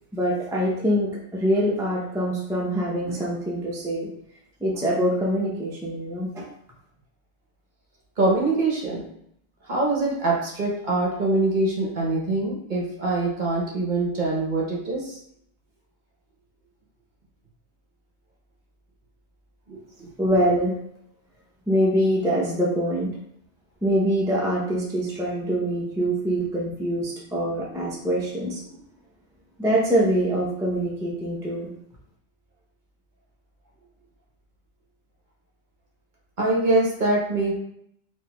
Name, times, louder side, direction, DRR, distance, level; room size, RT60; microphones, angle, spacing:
voice 1, 0.1-4.1 4.6-6.5 20.2-20.8 21.7-23.1 23.8-28.7 29.6-31.7, equal, 5° right, -4 dB, 0.4 m, -24 dB
voice 2, 8.2-9.0 9.6-15.2 19.7-20.1 36.4-37.6, right 2 dB, 45° right, -3 dB, 0.9 m, -24 dB
4.2 x 2.6 x 2.2 m, 0.72 s
omnidirectional pair, 1.2 m